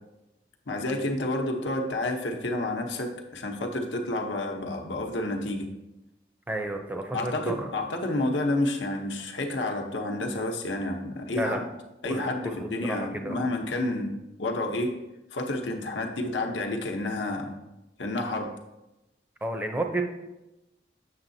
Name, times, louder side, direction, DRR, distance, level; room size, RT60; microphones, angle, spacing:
voice 1, 0.7-5.7 7.1-11.6 12.0-14.9 15.3-17.6 18.0-18.5, left 2 dB, 90° left, 3 dB, 0.8 m, -30 dB
voice 2, 6.5-7.7 11.3-11.6 12.1-13.5 19.4-20.0, right 1 dB, 10° right, 4 dB, 0.5 m, -32 dB
7.3 x 6.3 x 2.7 m, 0.97 s
head